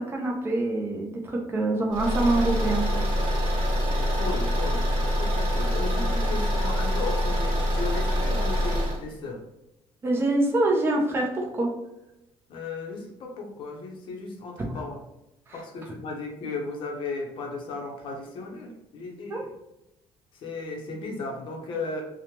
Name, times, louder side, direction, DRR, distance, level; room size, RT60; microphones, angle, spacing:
voice 1, 0.0-3.0 10.0-11.7 15.5-15.6 19.3-19.4, right 2 dB, 20° right, -1 dB, 0.4 m, -25 dB
Car / Engine, 1.9-9.0, equal, 50° right, 1.1 m, -25 dB
voice 2, 3.9-9.4 12.5-15.0 15.5-19.5 20.3-22.0, left 3 dB, 50° left, 2 dB, 0.6 m, -35 dB
2.7 x 2.0 x 3.1 m, 0.89 s
cardioid pair, 170°, 11 cm